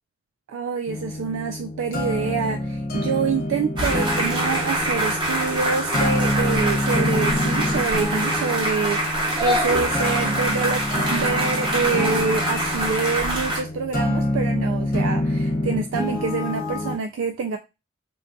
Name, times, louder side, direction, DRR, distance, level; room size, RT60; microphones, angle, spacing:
voice 1, 0.5-17.6, right 5 dB, 70° right, 0.3 m, -26 dB
sound 1, 0.9-17.0, left 1 dB, 45° left, 0.8 m, -27 dB
sound 2, 3.8-13.6, right 1 dB, 25° right, 0.9 m, -25 dB
3.7 x 2.6 x 2.2 m
head